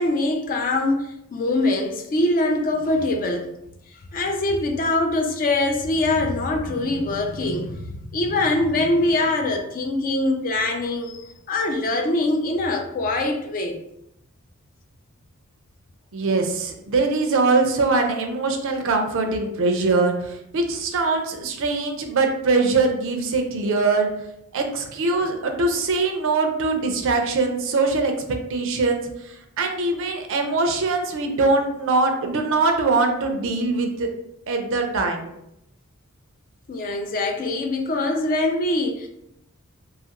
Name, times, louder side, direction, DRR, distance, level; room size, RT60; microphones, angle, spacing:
voice 1, 0.0-3.5 4.1-13.8 36.7-39.1, left 2 dB, 40° left, 0.4 m, -23 dB
voice 2, 16.1-24.1 24.5-34.1 34.5-35.3, right 3 dB, 65° right, 0.5 m, -22 dB
2.7 x 2.4 x 2.8 m
head